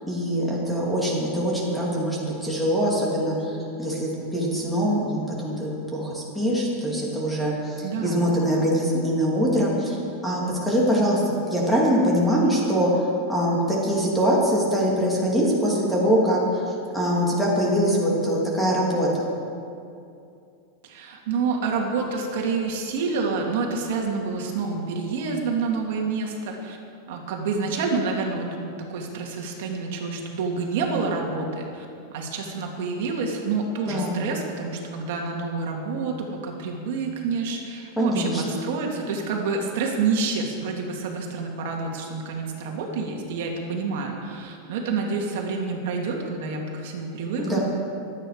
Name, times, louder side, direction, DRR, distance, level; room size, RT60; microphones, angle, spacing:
voice 1, 0.1-11.2 11.5-19.2 33.9-34.1 38.0-38.6 47.4-47.6, equal, ahead, -5 dB, 2.7 m, -23 dB
voice 2, 7.8-8.3 20.8-26.8 27.1-31.9 32.1-47.6, right 4 dB, 65° right, 1 dB, 2.4 m, -28 dB
24.5 x 9.0 x 5.0 m, 2.5 s
supercardioid pair, 160°, 0 cm